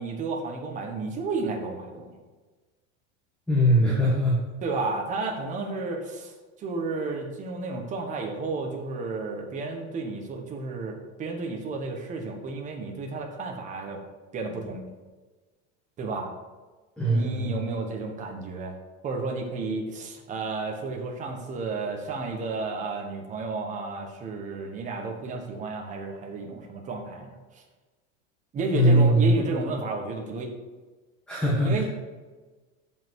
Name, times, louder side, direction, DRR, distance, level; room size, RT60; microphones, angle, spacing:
voice 1, 0.0-2.1 4.6-14.0 14.3-14.8 16.0-16.3 17.0-18.8 19.0-27.6 28.5-30.5 31.6-31.8, right 3 dB, 20° right, 2 dB, 1.4 m, -32 dB
voice 2, 3.5-4.4 17.0-17.6 28.7-29.3 31.3-31.8, right 1 dB, 5° left, -6 dB, 1.7 m, -21 dB
14.0 x 5.6 x 4.8 m, 1.3 s
supercardioid pair, 170°, 35 cm